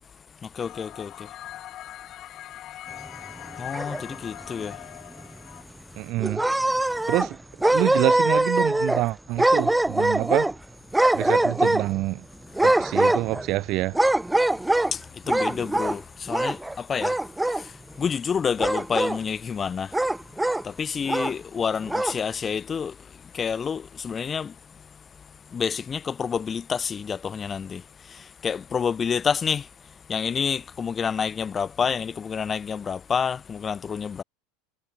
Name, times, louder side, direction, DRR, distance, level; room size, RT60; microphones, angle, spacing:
voice 1, 0.4-1.3 3.6-4.8 14.9-17.2 17.5-19.9 20.6-22.9 23.3-24.5 25.5-29.7 30.1-34.2, left 6 dB, 25° left, 1.4 m, -28 dB
sound 1, 0.6-5.6, left 13 dB, 45° left, 5.7 m, -42 dB
sound 2, 3.4-4.3 4.7-4.8 5.2-5.3 6.2-7.3 7.6-9.0 9.4-10.5 10.9-12.0 12.5-13.5 13.9-14.9 15.3-16.0 16.3-16.7 17.0-17.6 18.6-19.2 19.9-20.6 21.1-21.3 21.8-22.2, right 1 dB, 5° right, 1.3 m, -23 dB
voice 2, 6.0-6.5 7.1-7.4 7.7-10.5 11.1-12.2 12.6-14.0, right 18 dB, 55° right, 2.6 m, -27 dB
hypercardioid pair, 90°, 0 cm